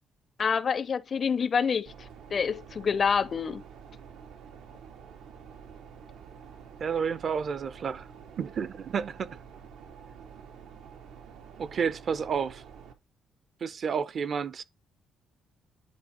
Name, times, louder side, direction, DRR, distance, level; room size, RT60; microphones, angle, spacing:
voice 1, 0.4-1.9 2.3-3.6, left 6 dB, 45° left, 0.5 m, -27 dB
sound 1, 1.9-12.9, right 7 dB, 80° right, 1.2 m, -48 dB
voice 2, 6.8-8.1 8.4-9.4 11.6-12.6 13.6-14.6, right 6 dB, 55° right, 0.7 m, -30 dB
10.0 x 3.5 x 4.3 m
cardioid pair, 90°, 0 cm